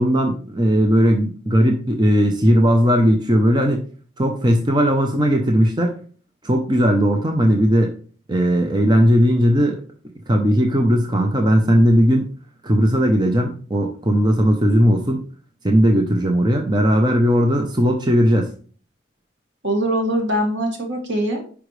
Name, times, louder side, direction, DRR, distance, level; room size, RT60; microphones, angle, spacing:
voice 1, 0.0-3.8 4.2-6.0 6.4-8.0 8.3-9.8 10.3-12.3 12.6-15.2 15.6-18.5, equal, 25° right, 3 dB, 0.8 m, -17 dB
voice 2, 19.6-21.4, right 1 dB, 75° right, 1 dB, 2.2 m, -22 dB
10.0 x 5.0 x 3.3 m, 0.42 s
head